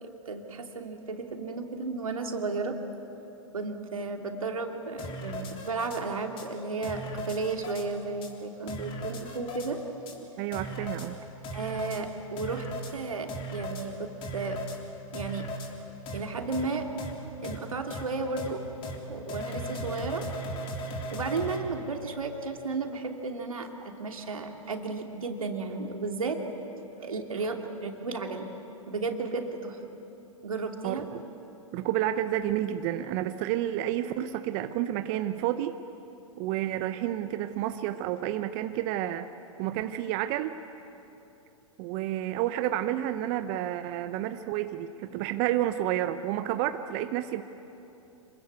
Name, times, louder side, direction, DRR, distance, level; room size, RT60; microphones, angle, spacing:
voice 1, 0.0-2.8 3.5-9.8 11.5-12.7 12.9-14.6 15.1-15.5 16.1-16.9 17.4-18.6 19.1-20.2 21.1-26.4 27.0-28.5 28.9-29.8 30.4-31.1, right 3 dB, 80° right, 3 dB, 2.8 m, -33 dB
sound 1, 5.0-6.0 6.4-6.5 6.8-7.9 8.2-8.3 8.7-9.7 10.1-10.2 10.5-11.1 11.4-12.0 12.4-12.9 13.3-13.9 14.2-14.8 15.1-15.7 16.1-16.2 16.5-16.7 17.0-17.1 17.4-17.6 17.9-18.0 18.4-18.5 18.8-19.0 19.3-21.6, equal, 30° left, 3.6 m, -37 dB
voice 2, 10.4-11.2 30.8-31.2 31.7-35.8 36.4-39.3 39.6-40.6 41.8-47.4, right 12 dB, 40° right, 9 dB, 0.9 m, -30 dB
27.0 x 21.5 x 8.2 m, 2.9 s
hypercardioid pair, 115°, 17 cm